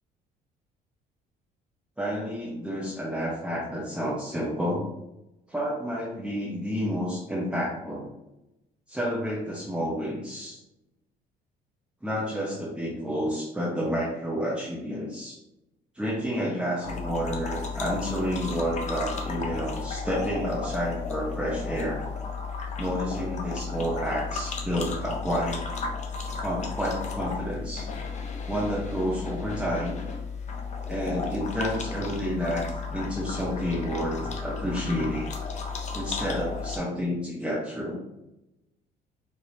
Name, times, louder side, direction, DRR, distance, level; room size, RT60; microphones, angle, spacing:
voice 1, 2.0-4.9 5.5-8.1 8.9-10.6 12.0-15.4 15.9-22.0 22.8-25.6 26.4-27.9 28.5-30.0 30.8-35.3 35.9-38.0, equal, 5° right, -5 dB, 0.9 m, -30 dB
sound 1, 16.8-36.8, left 5 dB, 45° left, 0.7 m, -34 dB
5.0 x 2.8 x 2.7 m, 0.91 s
cardioid pair, 110°, 17 cm